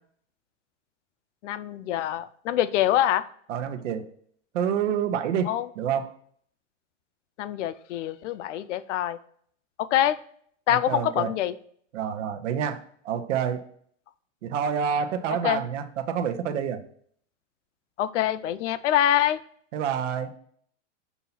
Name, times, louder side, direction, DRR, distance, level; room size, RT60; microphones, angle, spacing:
voice 1, 1.4-3.2 5.4-5.7 7.4-9.2 9.8-10.2 10.7-11.5 15.4-15.6 18.0-19.4, left 12 dB, 75° left, 15 dB, 0.5 m, -25 dB
voice 2, 3.5-4.1 4.5-6.1 10.7-11.3 11.9-13.7 14.4-16.8 19.7-20.3, right 8 dB, 75° right, 9 dB, 0.8 m, -28 dB
6.9 x 2.8 x 5.7 m, 0.62 s
hypercardioid pair, 130°, 36 cm